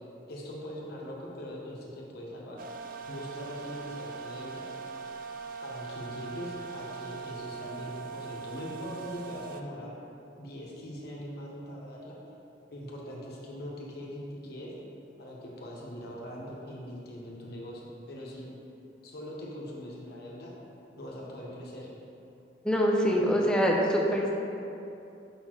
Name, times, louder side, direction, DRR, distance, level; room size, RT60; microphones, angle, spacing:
voice 1, 0.3-2.6 3.1-4.7 5.6-9.9 10.4-12.2 12.7-14.7 15.2-18.5 19.0-20.5 21.0-21.9, equal, 60° left, -3 dB, 1.0 m, -41 dB
sound 1, 2.6-9.6, right 5 dB, 50° right, 0.4 m, -41 dB
voice 2, 22.6-24.3, equal, 5° left, -2 dB, 0.5 m, -24 dB
5.4 x 4.3 x 4.4 m, 2.8 s
head